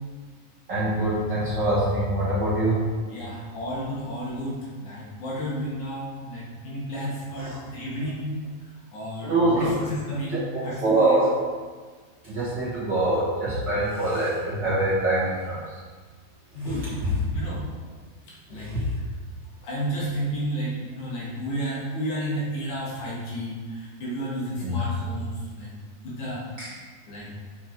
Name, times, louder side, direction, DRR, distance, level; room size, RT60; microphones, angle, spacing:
voice 1, 0.7-2.8 7.4-7.6 9.2-9.8 10.3-10.4 10.8-11.3 12.2-15.8 16.6-16.7 18.5-18.8 24.6-25.0 26.6-26.7, right 1 dB, 50° right, -9 dB, 1.3 m, -24 dB
voice 2, 3.0-8.4 8.9-11.2 16.5-17.6 18.5-18.8 19.6-25.7 26.0-26.5 27.1-27.3, equal, 60° left, -6 dB, 2.7 m, -32 dB
7.3 x 4.6 x 4.6 m, 1.5 s
omnidirectional pair, 4.2 m